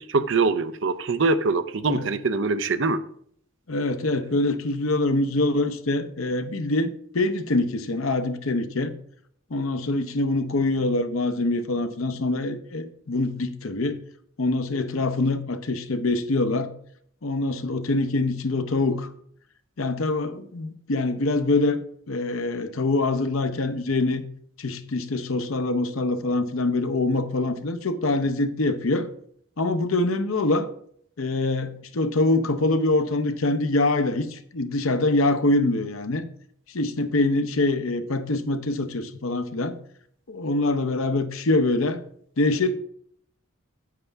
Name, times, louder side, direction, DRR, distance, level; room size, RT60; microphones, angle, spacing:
voice 1, 0.0-3.0, right 3 dB, 65° right, 0.6 m, -23 dB
voice 2, 3.7-8.9 9.5-14.0 14.4-16.7 17.2-19.1 19.8-21.8 22.1-24.2 24.6-29.1 29.6-30.7 31.2-36.2 36.7-39.7 40.3-42.0 42.4-42.7, left 2 dB, 80° left, 0.8 m, -24 dB
9.4 x 8.2 x 3.5 m
head